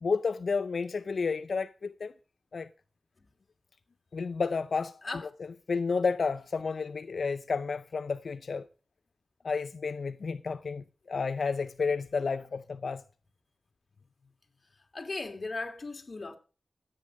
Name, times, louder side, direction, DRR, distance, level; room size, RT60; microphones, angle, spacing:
voice 1, 0.0-2.1 2.5-2.7 4.1-5.0 5.7-8.7 9.4-13.0, left 4 dB, 65° left, 0.6 m, -31 dB
voice 2, 14.9-16.4, left 3 dB, 40° left, 2.7 m, -37 dB
13.5 x 9.1 x 6.2 m
wide cardioid pair, 90°, 0 cm